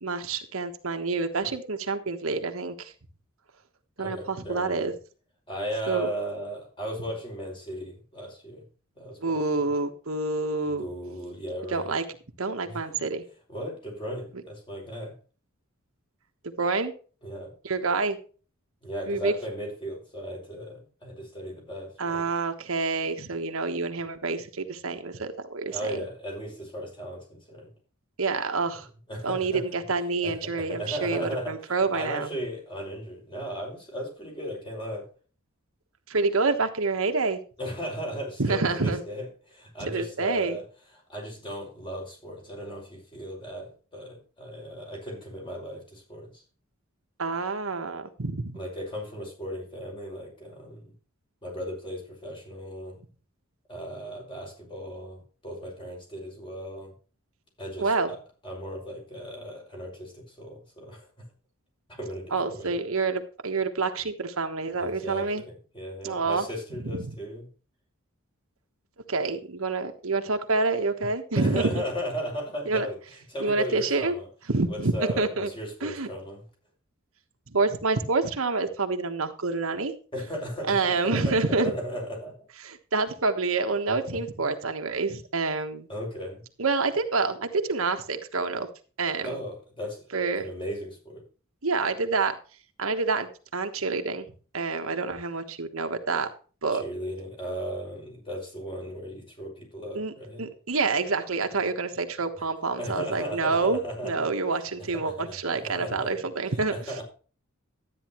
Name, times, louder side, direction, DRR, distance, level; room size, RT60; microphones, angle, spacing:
voice 1, 0.0-2.9 4.0-4.9 5.9-6.1 9.2-10.9 11.7-12.0 12.4-13.2 16.6-16.9 17.6-18.2 19.1-19.3 22.0-26.0 28.2-28.9 29.2-32.3 36.1-37.4 38.4-39.0 39.8-40.6 47.2-48.6 57.8-58.1 62.3-65.4 66.0-66.4 66.8-67.1 69.1-71.8 72.7-72.9 73.4-74.1 74.5-75.5 75.8-76.1 77.5-79.9 80.7-81.7 82.6-85.9 86.6-88.7 89.0-89.4 90.1-90.5 91.6-92.3 92.8-94.3 94.5-96.3 96.6-96.8 99.9-100.1 100.4-106.7, right 3 dB, 70° right, 6 dB, 1.3 m, -27 dB
voice 2, 4.0-4.9 5.5-8.6 9.0-9.6 10.6-11.9 12.7-12.8 13.5-15.1 17.2-17.5 18.8-22.3 25.7-27.7 29.1-29.7 30.2-35.0 37.6-40.6 41.1-46.4 48.5-50.9 51.4-53.0 53.7-56.9 57.6-58.2 58.4-61.1 61.9-62.7 64.8-67.5 71.3-73.0 73.3-74.3 74.7-76.4 80.1-82.3 84.1-84.2 85.9-86.4 89.2-90.0 90.4-91.2 96.7-100.4 102.4-102.5 102.8-104.3 104.9-106.2 106.5-107.0, equal, 25° left, 0 dB, 5.7 m, -36 dB
12.5 x 9.8 x 3.1 m, 0.37 s
head